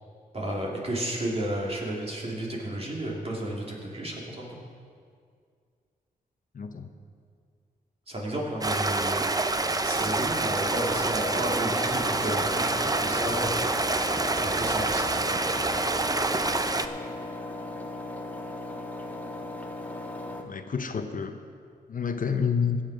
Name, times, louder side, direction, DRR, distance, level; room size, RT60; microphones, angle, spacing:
voice 1, 0.3-4.6 8.1-9.2 9.8-13.5 14.3-15.2, right 1 dB, 40° right, -3 dB, 3.1 m, -32 dB
voice 2, 6.5-6.9 20.4-21.4 21.9-22.8, left 6 dB, 55° left, 7 dB, 0.8 m, -29 dB
Stream, 8.6-16.9, right 2 dB, 20° right, 0.6 m, -27 dB
Engine, 10.5-20.4, left 2 dB, 10° left, 1.5 m, -37 dB
16.5 x 7.4 x 5.0 m, 2.1 s
cardioid pair, 60°, 16 cm